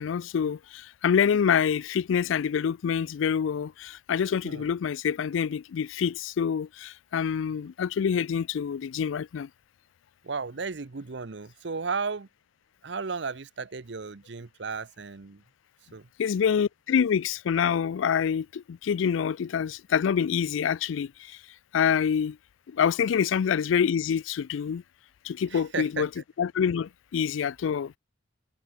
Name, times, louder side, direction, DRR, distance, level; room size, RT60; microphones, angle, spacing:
voice 1, 0.0-9.5 16.2-21.4 21.7-22.4 22.7-24.8 25.2-26.1 26.4-27.9, left 7 dB, 80° left, 0.4 m, -26 dB
voice 2, 10.2-12.3 12.8-15.4 15.9-16.1 25.5-26.1, right 4 dB, 65° right, 0.8 m, -34 dB
head